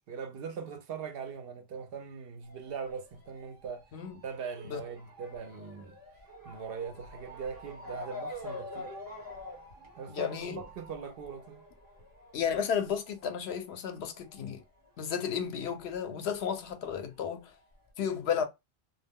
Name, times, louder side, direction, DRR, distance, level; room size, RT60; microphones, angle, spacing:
voice 1, 0.1-3.8 4.2-6.0 6.4-8.9 10.0-11.6, right 6 dB, 70° right, 0.8 m, -41 dB
Motor vehicle (road) / Siren, 2.4-15.4 15.7-16.9 17.5-17.6 17.9-18.0, left 1 dB, 40° right, 1.3 m, -47 dB
voice 2, 10.1-10.6 12.3-14.6 15.0-17.5 18.0-18.4, left 7 dB, 85° left, 0.9 m, -33 dB
2.3 x 2.1 x 3.4 m
omnidirectional pair, 1.0 m